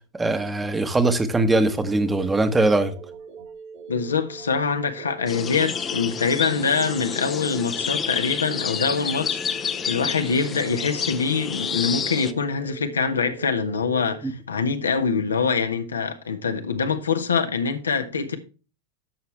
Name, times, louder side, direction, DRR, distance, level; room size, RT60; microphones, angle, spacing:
voice 1, 0.1-2.9 14.2-14.3, right 2 dB, 10° right, 1.3 m, -21 dB
sound 1, 1.8-14.2, right 6 dB, 45° right, 2.3 m, -42 dB
voice 2, 3.9-18.4, left 5 dB, 75° left, 1.4 m, -24 dB
sound 2, 5.3-12.3, left 7 dB, 25° left, 0.9 m, -29 dB
11.5 x 7.1 x 3.3 m
figure-of-eight pair, 90°, 0 cm